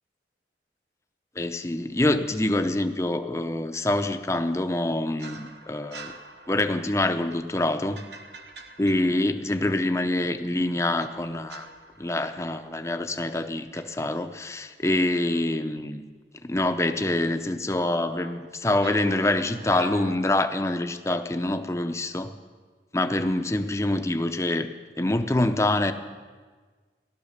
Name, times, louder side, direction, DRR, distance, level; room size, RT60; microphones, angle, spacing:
voice 1, 1.4-6.1 6.5-8.0 8.8-11.7 12.0-16.0 16.4-22.3 22.9-24.7 25.0-25.9, left 1 dB, 15° left, 8 dB, 0.6 m, -25 dB
sound 1, 5.2-10.0 11.0-13.4 13.7-14.1 18.1-20.2, right 3 dB, 70° right, 1.1 m, -45 dB
15.0 x 12.5 x 6.6 m, 1.5 s
head